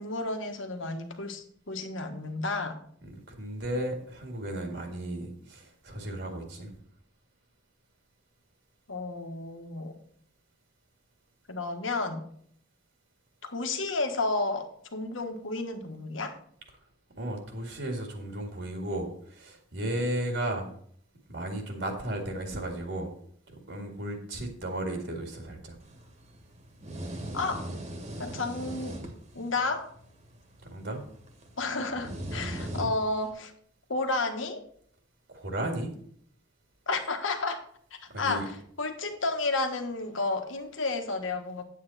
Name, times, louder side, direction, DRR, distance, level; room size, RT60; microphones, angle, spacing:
voice 1, 0.0-2.8 8.9-9.9 11.5-12.2 13.4-14.7 14.9-16.4 27.3-27.7 28.2-29.0 29.3-29.9 31.6-33.5 33.9-34.6 36.9-37.6 38.2-41.6, left 3 dB, 80° left, 6 dB, 1.5 m, -31 dB
voice 2, 3.4-6.7 17.2-20.7 21.3-23.1 23.5-25.8 30.7-31.0 35.3-35.9 38.1-38.4, right 1 dB, 65° right, 3 dB, 2.1 m, -34 dB
sound 1, 25.8-33.3, right 1 dB, 35° right, 1.7 m, -40 dB
9.2 x 8.4 x 4.2 m, 0.62 s
head